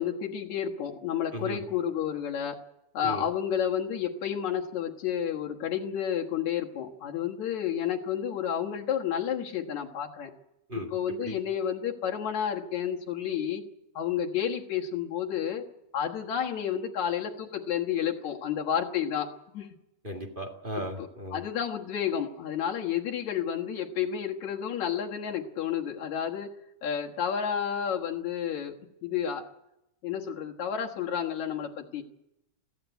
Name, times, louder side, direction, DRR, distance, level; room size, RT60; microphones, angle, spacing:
voice 1, 0.0-2.6 2.9-10.3 10.9-13.6 13.9-15.6 15.9-19.3 19.5-19.7 21.0-26.5 26.8-28.8 29.0-29.4 30.0-32.0, left 9 dB, 70° left, 0 dB, 2.8 m, -31 dB
voice 2, 20.0-21.4, right 1 dB, 20° right, 3 dB, 1.7 m, -36 dB
22.0 x 15.5 x 9.3 m, 0.86 s
omnidirectional pair, 3.4 m